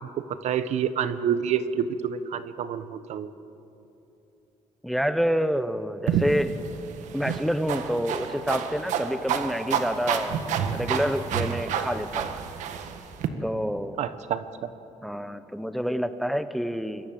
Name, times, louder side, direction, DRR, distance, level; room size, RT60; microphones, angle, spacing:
voice 1, 0.2-3.3 14.0-14.4, right 8 dB, 70° right, 12 dB, 1.2 m, -28 dB
voice 2, 4.8-6.5 7.1-10.5 10.7-12.4 13.4-14.0 15.0-17.1, equal, ahead, 11 dB, 0.9 m, -28 dB
sound 1, 6.1-13.3, right 7 dB, 90° right, 1.7 m, -29 dB
26.5 x 22.5 x 7.8 m, 2.9 s
cardioid pair, 130°, 12 cm